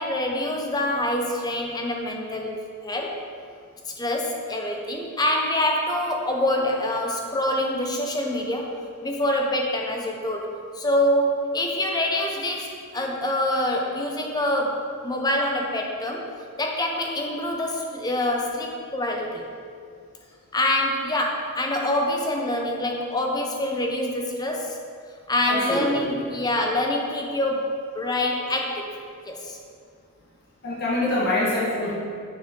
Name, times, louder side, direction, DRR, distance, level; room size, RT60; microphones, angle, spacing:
voice 1, 0.0-3.2 3.9-8.7 9.0-16.3 16.6-19.5 20.5-24.8 25.3-28.9 29.3-29.6, left 1 dB, 20° left, 1 dB, 0.7 m, -25 dB
voice 2, 25.4-26.1 30.6-31.9, left 1 dB, 50° left, -7 dB, 1.4 m, -25 dB
6.4 x 6.3 x 3.7 m, 2.2 s
head